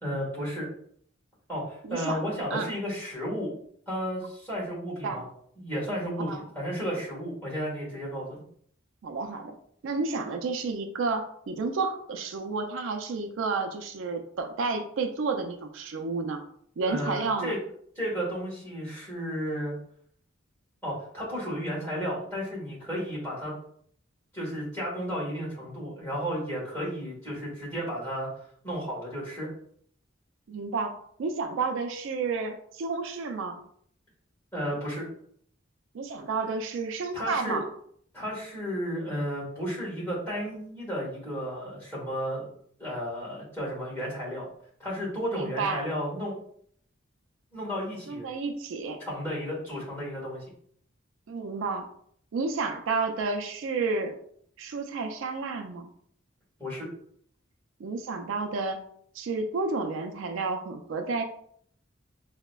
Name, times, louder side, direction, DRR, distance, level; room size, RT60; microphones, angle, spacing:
voice 1, 0.0-0.7 1.5-3.5 3.9-5.2 5.6-8.4 16.8-17.6 17.9-19.7 20.8-23.5 24.3-28.3 28.6-29.5 34.5-35.1 37.1-37.6 38.1-42.5 42.8-44.4 44.8-46.3 47.5-48.3 49.0-50.4 56.6-56.9, equal, 10° left, -6 dB, 1.4 m, -33 dB
voice 2, 1.8-2.2 2.5-2.7 5.0-5.2 6.2-6.4 9.0-9.6 9.8-16.4 16.8-17.5 30.5-30.9 31.2-33.6 35.9-37.6 45.3-45.9 48.1-49.0 51.3-51.9 52.3-54.2 54.6-55.9 57.8-58.8 59.1-61.2, right 4 dB, 70° right, 5 dB, 0.4 m, -31 dB
4.7 x 2.1 x 2.2 m, 0.64 s
head